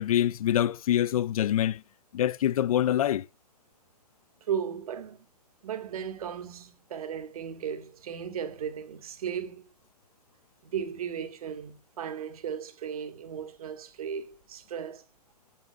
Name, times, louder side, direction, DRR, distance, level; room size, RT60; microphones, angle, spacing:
voice 1, 0.0-1.8 2.1-3.3, left 11 dB, 60° left, 0.6 m, -25 dB
voice 2, 4.4-5.3 5.6-9.7 10.6-15.0, right 8 dB, 60° right, 2.3 m, -36 dB
10.0 x 7.1 x 5.6 m
hypercardioid pair, 130°, 21 cm